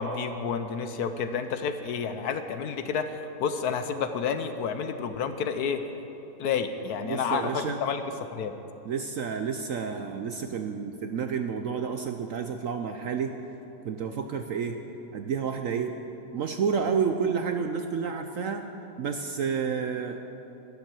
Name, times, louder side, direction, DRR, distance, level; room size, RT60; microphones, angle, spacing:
voice 1, 0.0-5.8 6.4-8.0 8.3-8.5, left 6 dB, 65° left, 9 dB, 1.1 m, -30 dB
voice 2, 7.0-7.8 8.8-13.4 13.8-14.8 15.1-16.0 16.3-18.7 19.0-20.2, right 6 dB, 65° right, 6 dB, 0.8 m, -30 dB
11.5 x 11.5 x 7.5 m, 3.0 s
omnidirectional pair, 1.9 m